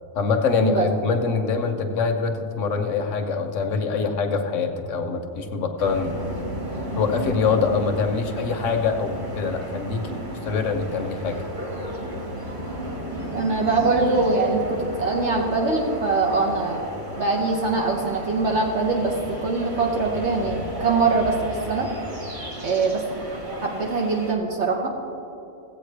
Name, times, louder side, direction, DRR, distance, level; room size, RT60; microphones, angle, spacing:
voice 1, 0.1-6.1 7.0-11.4, left 5 dB, 70° left, 5 dB, 1.2 m, -24 dB
sound 1, 5.8-24.3, equal, 40° right, 1.9 m, -33 dB
voice 2, 13.3-16.9 17.2-21.3 21.7-21.9 22.6-23.0 23.6-24.9, right 3 dB, 60° right, -1 dB, 1.2 m, -23 dB
15.5 x 8.4 x 3.3 m, 2.9 s
omnidirectional pair, 1.4 m